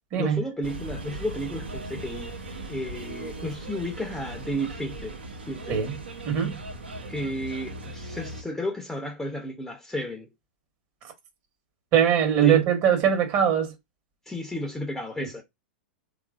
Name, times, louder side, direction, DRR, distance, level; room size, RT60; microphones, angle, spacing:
voice 1, 0.2-2.4 2.7-5.2 5.5-5.8 7.1-10.3 12.4-12.6 14.3-15.4, equal, 5° left, 0.5 m, -33 dB
sound 1, 0.6-8.4, right 2 dB, 90° right, 0.7 m, -38 dB
voice 2, 6.2-6.6 11.9-13.7, right 9 dB, 45° right, 1.0 m, -21 dB
3.0 x 2.4 x 2.3 m
hypercardioid pair, 105°, 6 cm